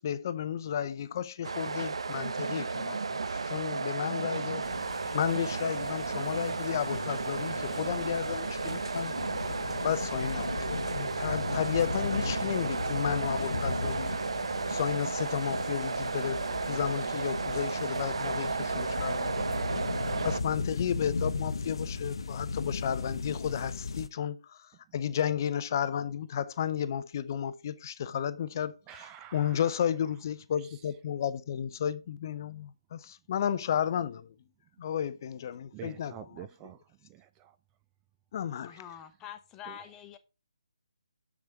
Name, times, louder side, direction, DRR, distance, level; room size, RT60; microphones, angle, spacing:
voice 1, 0.0-4.7 4.9-9.1 9.8-14.2 14.7-19.3 19.8-20.0 20.2-34.3 34.8-36.5 38.3-38.8, left 9 dB, 40° left, 0.5 m, -33 dB
sound 1, 1.4-20.4, right 4 dB, 70° right, 0.6 m, -33 dB
sound 2, 4.6-24.1, left 4 dB, 65° left, 0.8 m, -37 dB
voice 2, 28.9-29.7 30.6-30.8 35.7-37.6 38.7-38.8 39.7-39.8, right 11 dB, 15° right, 0.3 m, -48 dB
voice 3, 38.6-40.2, left 10 dB, 15° left, 0.8 m, -45 dB
7.2 x 6.1 x 4.4 m
figure-of-eight pair, 150°, 3 cm